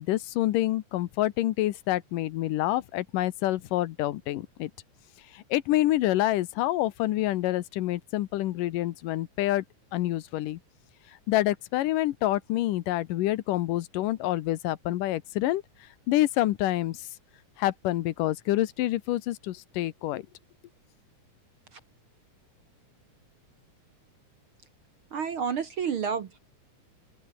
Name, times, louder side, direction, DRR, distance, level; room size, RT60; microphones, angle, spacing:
voice 1, 0.0-4.7 5.3-9.6 9.9-10.6 11.3-15.6 16.1-17.1 17.6-20.3, left 15 dB, 85° left, 2.6 m, -27 dB
voice 2, 25.1-26.4, right 7 dB, 55° right, 1.6 m, -30 dB
omnidirectional pair, 3.8 m